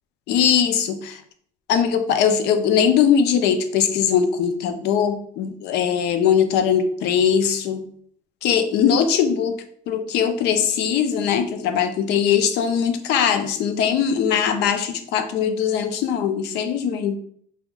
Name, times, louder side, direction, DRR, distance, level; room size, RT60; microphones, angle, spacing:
voice 1, 0.3-1.2 1.7-7.8 8.4-17.2, left 8 dB, 85° left, 9 dB, 0.5 m, -20 dB
3.0 x 2.2 x 3.8 m, 0.62 s
cardioid pair, 110°, 17 cm